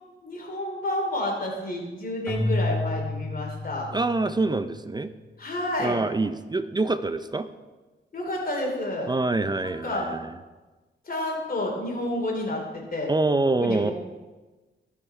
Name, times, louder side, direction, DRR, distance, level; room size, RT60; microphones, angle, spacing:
voice 1, 0.2-3.9 5.4-6.0 8.1-9.1 9.6-10.1 11.1-13.1 13.6-13.9, left 1 dB, 45° left, 0 dB, 2.8 m, -30 dB
Keyboard (musical), 2.3-4.5, left 2 dB, 10° left, 1.9 m, -30 dB
voice 2, 3.9-5.1 5.8-7.5 9.1-10.3 13.1-13.9, right 2 dB, 20° right, 12 dB, 0.4 m, -25 dB
13.0 x 5.5 x 4.6 m, 1.2 s
cardioid pair, 85°, 21 cm